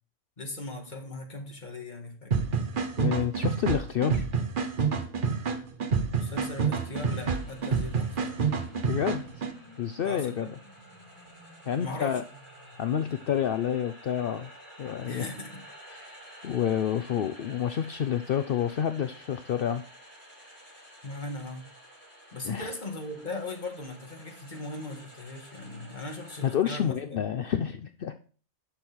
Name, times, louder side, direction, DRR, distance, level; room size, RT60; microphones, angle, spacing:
voice 1, 0.4-2.4 6.1-8.4 10.0-10.5 11.8-12.2 15.0-15.6 21.0-21.7 22.3-27.3, left 2 dB, 40° left, 3 dB, 1.9 m, -38 dB
sound 1, 2.3-9.5, right 5 dB, 50° right, 1.1 m, -28 dB
voice 2, 3.0-4.3 8.9-9.3 9.8-10.5 11.7-12.2 12.8-14.5 14.8-15.3 15.9-16.2 16.4-19.8 22.4-22.7 26.4-28.2, left 9 dB, 60° left, 10 dB, 0.7 m, -29 dB
sound 2, 6.8-26.6, equal, 10° left, 4.7 m, -50 dB
10.5 x 6.4 x 4.4 m, 0.40 s
omnidirectional pair, 1.2 m